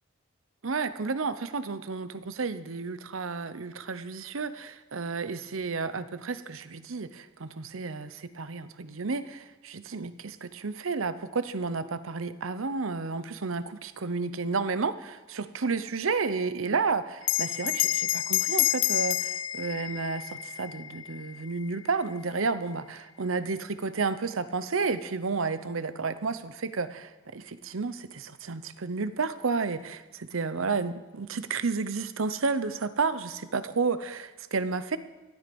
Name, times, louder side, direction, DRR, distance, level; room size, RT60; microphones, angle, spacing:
voice 1, 0.6-35.0, right 4 dB, 80° right, 13 dB, 0.8 m, -31 dB
Bell, 17.2-22.1, left 14 dB, 65° left, 0.4 m, -29 dB
17.5 x 12.5 x 5.3 m, 1.2 s
head